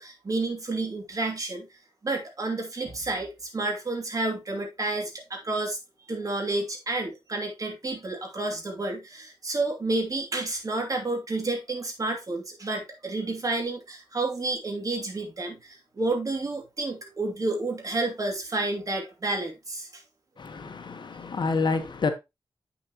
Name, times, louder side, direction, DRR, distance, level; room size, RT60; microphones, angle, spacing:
voice 1, 0.0-1.7 2.0-5.8 6.1-20.0, right 2 dB, 40° right, 2.8 m, -30 dB
voice 2, 20.4-22.1, left 4 dB, 60° left, 1.4 m, -28 dB
8.2 x 6.7 x 3.0 m
wide cardioid pair, 100°, 9 cm